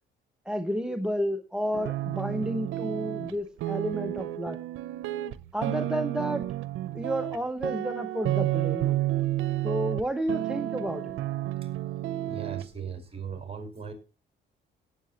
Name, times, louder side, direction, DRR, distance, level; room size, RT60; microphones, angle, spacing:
voice 1, 0.5-4.6 5.5-6.5 6.9-9.0 9.6-11.1, equal, 5° right, 5 dB, 1.1 m, -31 dB
sound 1, 1.7-3.3 3.6-7.4 7.6-10.0 10.3-12.7, right 14 dB, 85° right, 0.7 m, -31 dB
voice 2, 11.5-13.9, right 7 dB, 30° right, 6 dB, 4.6 m, -39 dB
17.5 x 8.1 x 3.0 m, 0.32 s
cardioid pair, 90°, 20 cm